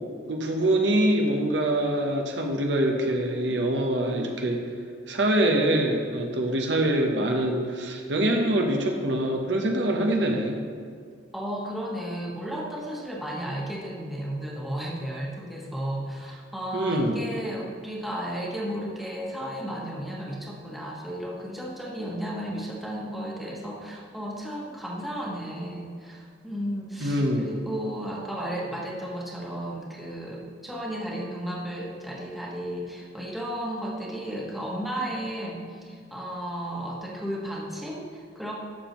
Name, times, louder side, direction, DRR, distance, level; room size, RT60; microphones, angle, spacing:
voice 1, 0.3-4.6 5.1-10.6 16.7-17.2 27.0-27.5, right 1 dB, 75° right, 2 dB, 1.0 m, -24 dB
voice 2, 11.3-38.5, equal, ahead, -4 dB, 1.3 m, -34 dB
12.0 x 7.2 x 3.1 m, 2.1 s
head